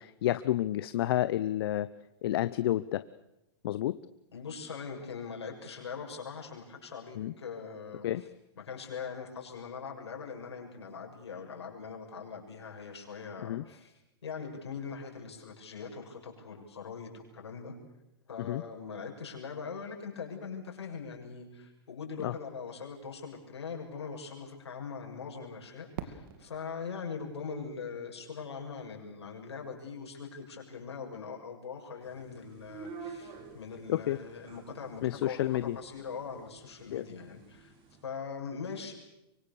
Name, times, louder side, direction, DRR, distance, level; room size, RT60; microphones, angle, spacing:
voice 1, 0.0-1.9 2.2-3.0 3.6-4.0 7.2-7.3 8.0-8.2 13.4-13.6 18.4-18.6 22.2-22.3 33.9-34.2 35.0-35.8 36.9-37.0, left 13 dB, 65° left, 15 dB, 0.8 m, -30 dB
voice 2, 4.3-8.3 8.6-13.9 14.2-17.8 18.3-37.7 38.0-38.9, left 5 dB, 80° left, 1 dB, 7.2 m, -42 dB
Fireworks, 26.0-28.8, right 9 dB, 60° right, 2.7 m, -46 dB
sound 1, 32.0-38.0, right 5 dB, 40° right, 5.4 m, -50 dB
24.5 x 24.0 x 7.0 m, 0.90 s
hypercardioid pair, 115°, 14 cm